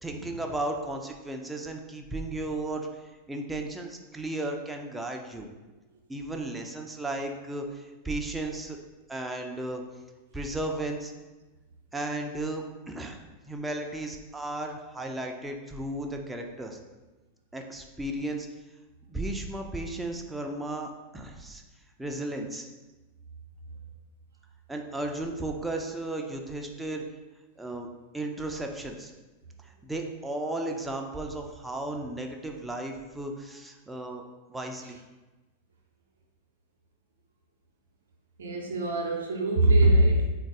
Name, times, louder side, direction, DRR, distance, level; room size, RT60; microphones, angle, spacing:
voice 1, 0.0-5.5 6.1-8.8 9.1-9.8 10.3-11.1 11.9-13.2 13.5-16.8 17.5-18.5 19.1-21.6 22.0-22.7 24.7-27.0 27.6-27.9 28.1-29.1 29.6-34.2 34.5-35.0, right 2 dB, 5° right, 2 dB, 0.4 m, -34 dB
voice 2, 38.4-40.3, right 1 dB, 65° right, 1 dB, 0.5 m, -22 dB
3.8 x 2.4 x 3.5 m, 1.2 s
figure-of-eight pair, 90°, 0 cm